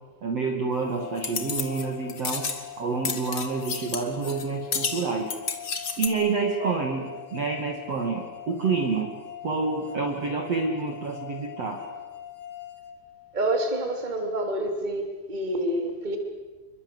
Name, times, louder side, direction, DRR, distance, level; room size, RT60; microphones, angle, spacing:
voice 1, 0.2-2.5 2.8-5.3 6.0-9.1 9.4-11.8, right 4 dB, 45° right, 2 dB, 2.7 m, -28 dB
sound 1, 0.8-13.7, left 11 dB, 45° left, 1.8 m, -42 dB
sound 2, 1.2-2.6 3.0-4.4 4.7-6.1, left 6 dB, 70° left, 0.9 m, -31 dB
voice 2, 13.3-16.2, right 1 dB, 10° right, 4 dB, 2.9 m, -28 dB
28.0 x 23.5 x 8.0 m, 1.3 s
omnidirectional pair, 5.1 m